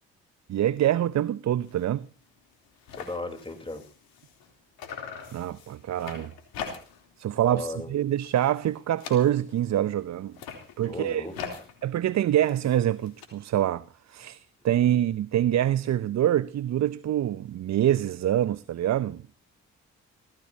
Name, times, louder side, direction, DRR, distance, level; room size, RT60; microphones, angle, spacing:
voice 1, 0.5-2.1 5.3-6.3 7.2-10.4 10.8-11.3 11.8-19.2, right 11 dB, 45° right, 0.7 m, -25 dB
sound 1, 1.6-1.9 2.2-2.3 2.5-4.5 4.8-7.1 7.5-7.8 8.2-9.7 10.2-13.3, left 7 dB, 70° left, 3.4 m, -42 dB
voice 2, 2.9-3.8 7.4-7.9 10.8-11.3, left 2 dB, 15° left, 3.8 m, -36 dB
25.5 x 16.5 x 2.8 m
hypercardioid pair, 40°, 37 cm